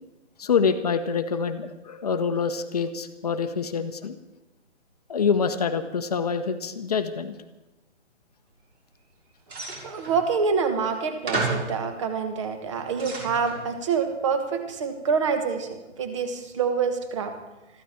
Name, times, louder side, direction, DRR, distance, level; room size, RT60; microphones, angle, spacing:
voice 1, 0.4-4.1 5.1-7.3, left 6 dB, 35° left, 8 dB, 0.9 m, -26 dB
sound 1, 9.5-10.2 10.9-11.0 11.3-11.8 12.5-13.6, right 3 dB, 55° right, 6.1 m, -31 dB
voice 2, 9.8-17.3, right 5 dB, 25° right, 7 dB, 1.3 m, -26 dB
21.5 x 14.5 x 4.4 m, 1.0 s
figure-of-eight pair, 155°, 36 cm